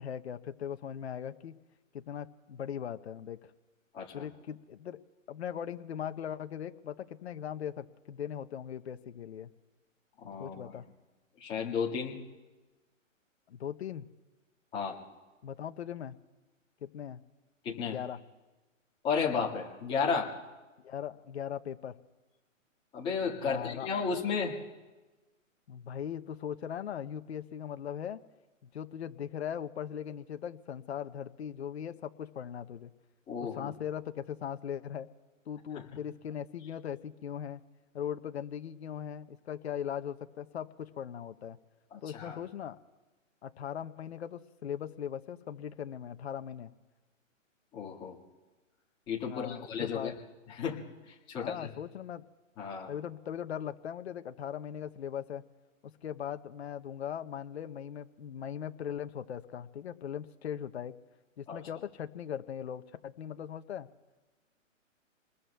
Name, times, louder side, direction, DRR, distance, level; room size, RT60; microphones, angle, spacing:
voice 1, 0.0-1.6 1.9-3.5 4.1-5.0 5.3-9.5 10.4-10.9 13.5-14.1 15.4-16.1 16.8-17.2 17.9-18.2 20.8-22.0 23.4-23.9 25.7-28.2 28.7-32.9 33.4-35.1 35.5-37.6 37.9-41.6 42.0-42.8 43.4-46.7 49.3-50.1 51.4-52.2 52.9-55.4 56.0-60.9 61.4-63.9, left 9 dB, 55° left, 9 dB, 0.8 m, -39 dB
voice 2, 3.9-4.3 10.2-10.5 11.4-12.2 14.7-15.0 17.6-18.0 19.0-20.3 22.9-24.5 33.3-33.7 35.7-35.8 41.9-42.4 47.7-48.2 49.1-50.1 50.5-50.8 51.1-51.7 52.6-52.9 61.5-61.6, left 5 dB, 15° left, -4 dB, 1.8 m, -33 dB
29.0 x 21.0 x 2.3 m, 1.2 s
hypercardioid pair, 160°, 40 cm